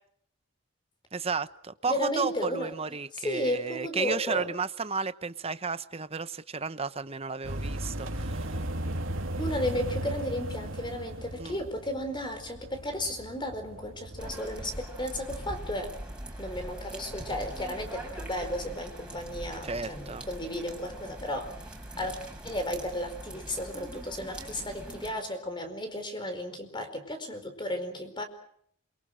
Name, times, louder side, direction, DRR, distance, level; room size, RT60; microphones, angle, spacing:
voice 1, 1.1-8.6 11.4-11.6 19.6-20.3, right 4 dB, 30° right, 13 dB, 0.9 m, -33 dB
voice 2, 1.9-2.7 3.1-4.5 9.4-15.9 16.4-21.6 22.0-22.2 22.4-28.2, left 1 dB, 20° left, 7 dB, 4.6 m, -34 dB
sound 1, 7.4-14.4, right 1 dB, 75° right, 2.8 m, -36 dB
sound 2, 14.2-25.1, right 1 dB, 5° right, 6.3 m, -42 dB
28.0 x 24.0 x 6.4 m, 0.66 s
head